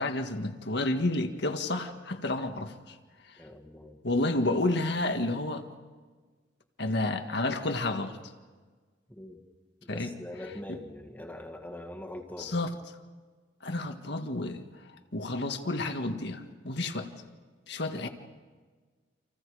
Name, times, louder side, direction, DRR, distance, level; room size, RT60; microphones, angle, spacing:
voice 1, 0.0-3.0 4.0-5.6 6.8-8.2 9.9-10.1 12.4-12.7 13.6-14.6 15.1-17.1 17.7-18.1, left 2 dB, 60° left, 6 dB, 1.8 m, -30 dB
voice 2, 3.4-4.0 9.1-9.4 9.9-12.5, left 1 dB, 10° left, 1 dB, 2.0 m, -42 dB
29.5 x 27.5 x 5.0 m, 1.5 s
head